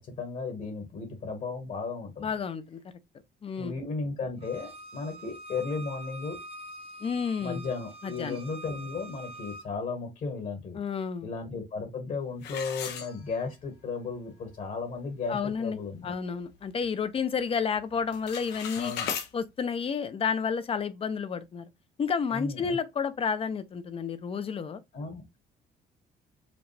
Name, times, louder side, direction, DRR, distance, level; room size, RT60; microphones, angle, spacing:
voice 1, 0.0-2.3 3.6-6.4 7.4-10.8 11.2-16.1 18.8-19.1 22.3-22.8 24.9-25.4, left 4 dB, 50° left, 1.5 m, -35 dB
voice 2, 2.2-2.8 3.4-3.7 7.0-7.6 8.0-8.4 10.7-11.3 15.3-15.8 16.0-18.9 19.3-21.6 22.0-24.8, left 6 dB, 35° left, 0.6 m, -31 dB
Bowed string instrument, 4.4-9.7, right 1 dB, 35° right, 0.8 m, -45 dB
sound 1, 12.4-13.7 14.1-14.2 14.8-14.9 15.3-15.6 16.0-17.1 17.4-17.8 18.0-19.3, left 8 dB, 85° left, 1.0 m, -37 dB
5.0 x 2.3 x 3.3 m
cardioid pair, 110°, 17 cm